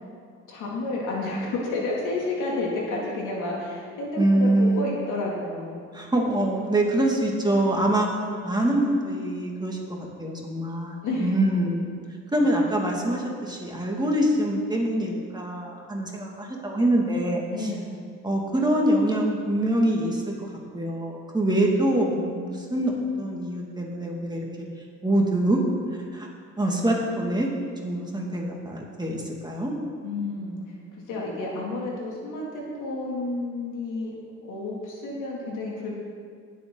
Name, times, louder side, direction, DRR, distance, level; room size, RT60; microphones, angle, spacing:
voice 1, 0.5-5.8 11.0-11.5 17.5-17.9 30.0-30.8 31.1-34.1 34.4-36.0, left 2 dB, 85° left, -3 dB, 2.9 m, -30 dB
voice 2, 4.2-4.9 5.9-8.1 8.4-9.8 10.2-11.9 12.3-17.7 18.2-20.2 20.7-22.9 23.2-24.5 25.0-25.6 26.1-26.3 26.6-27.5 27.8-29.7, right 1 dB, 15° right, -1 dB, 2.3 m, -24 dB
19.5 x 7.5 x 4.0 m, 2.1 s
cardioid pair, 90°, 30 cm